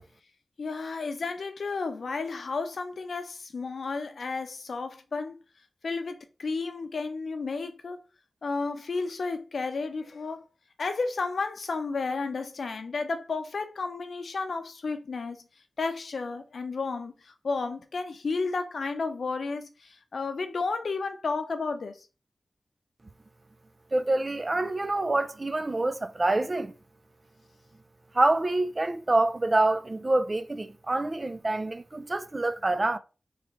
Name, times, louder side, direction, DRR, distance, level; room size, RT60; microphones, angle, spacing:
voice 1, 0.6-5.3 5.8-8.0 8.4-10.4 10.8-15.4 15.8-22.0, left 4 dB, 80° left, 0.6 m, -32 dB
voice 2, 23.9-26.7 28.1-33.0, right 2 dB, 35° right, 0.5 m, -26 dB
3.3 x 3.2 x 4.0 m
cardioid pair, 60°, 0 cm